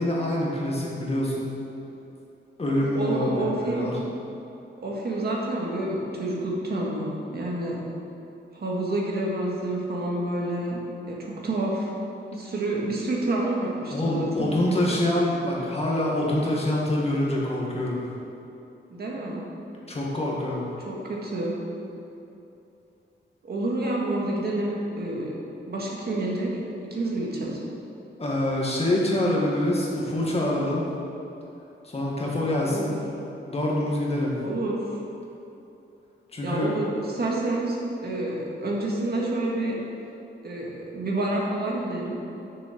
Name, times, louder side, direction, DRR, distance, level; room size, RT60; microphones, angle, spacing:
voice 1, 0.0-1.5 2.6-3.9 13.9-18.0 19.9-20.6 28.2-30.8 31.8-32.9 33.5-34.4 36.3-36.7, left 1 dB, 30° left, -4 dB, 1.9 m, -25 dB
voice 2, 2.7-3.9 4.8-7.8 8.5-10.8 11.1-11.9 12.3-14.5 18.9-19.5 20.9-21.6 23.4-25.3 25.7-26.5 26.9-27.6 32.7-33.0 34.4-34.8 36.4-37.8 38.0-39.8 40.4-42.2, right 2 dB, 55° right, -3 dB, 1.8 m, -28 dB
6.8 x 6.7 x 6.9 m, 2.9 s
wide cardioid pair, 120°, 19 cm